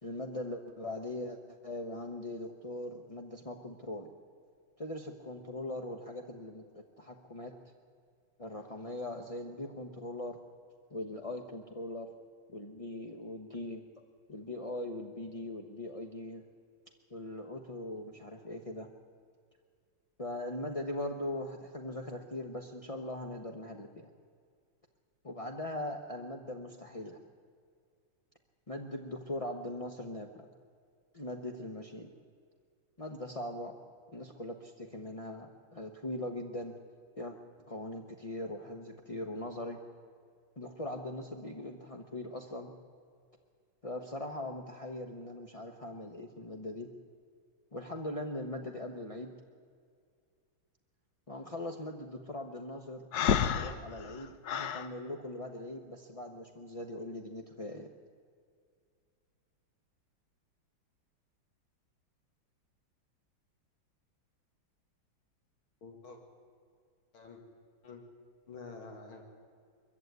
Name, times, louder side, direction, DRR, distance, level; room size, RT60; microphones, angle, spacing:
voice 1, 0.0-4.1 4.8-7.5 8.4-10.4 10.9-12.1 12.5-14.0 14.3-16.4 17.1-18.9 20.2-24.1 25.2-27.2 28.7-30.5 31.1-32.1 33.0-33.7 34.1-36.7 37.2-37.4 37.7-39.8 40.6-42.7 43.8-46.9 47.7-49.3 51.3-57.9, left 1 dB, 30° left, 4 dB, 0.6 m, -40 dB
Breathing, 53.1-54.9, left 8 dB, 60° left, 1.2 m, -30 dB
voice 2, 65.8-66.2 67.1-67.4 67.8-68.0 68.5-69.2, left 4 dB, 80° left, 3 dB, 2.9 m, -48 dB
22.0 x 14.5 x 9.5 m, 2.2 s
omnidirectional pair, 2.3 m